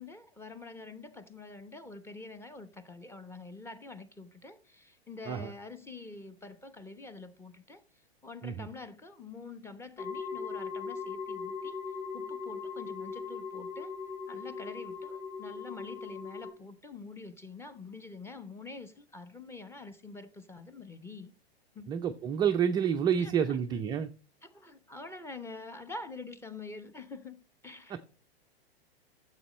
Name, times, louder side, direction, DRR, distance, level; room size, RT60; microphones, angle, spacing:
voice 1, 0.0-7.8 8.2-13.9 14.3-21.3 21.7-21.9 23.2-23.8 24.4-28.1, left 3 dB, 10° left, 0.9 m, -46 dB
sound 1, 10.0-16.5, left 5 dB, 30° left, 1.7 m, -39 dB
voice 2, 21.9-24.1, right 8 dB, 15° right, 0.4 m, -29 dB
13.5 x 7.5 x 3.1 m
hypercardioid pair, 110°, 31 cm